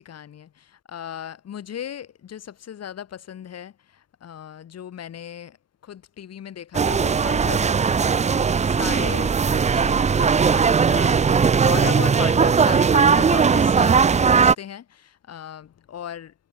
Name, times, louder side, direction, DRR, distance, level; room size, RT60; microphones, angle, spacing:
voice 1, 0.0-5.6 5.8-16.3, left 9 dB, 55° left, 5.9 m, -36 dB
sound 1, 6.7-14.5, right 6 dB, 25° right, 0.6 m, -18 dB
supercardioid pair, 75°, 30 cm